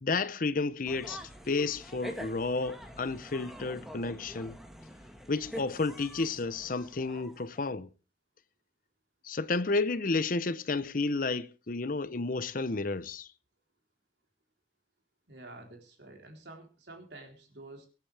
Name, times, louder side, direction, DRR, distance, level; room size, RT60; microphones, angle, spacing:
voice 1, 0.0-1.2 1.5-4.6 5.3-7.9 9.2-13.3, left 3 dB, 50° left, 0.7 m, -31 dB
sound 1, 0.8-7.7, equal, ahead, 1.7 m, -46 dB
voice 2, 15.3-17.9, right 2 dB, 80° right, 3.8 m, -49 dB
24.0 x 8.8 x 3.4 m
head